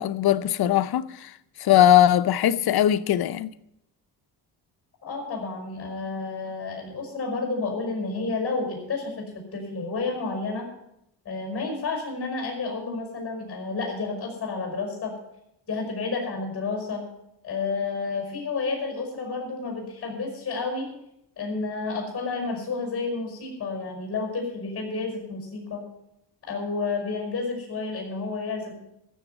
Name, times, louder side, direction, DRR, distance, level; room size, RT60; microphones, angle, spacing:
voice 1, 0.0-1.3 1.6-3.5, left 11 dB, 65° left, 0.7 m, -20 dB
voice 2, 5.0-10.7 11.3-15.1 15.7-17.0 17.4-20.9 21.4-25.8 26.5-28.7, left 4 dB, 35° left, 5.3 m, -30 dB
14.5 x 7.1 x 8.1 m
cardioid pair, 120°, 40 cm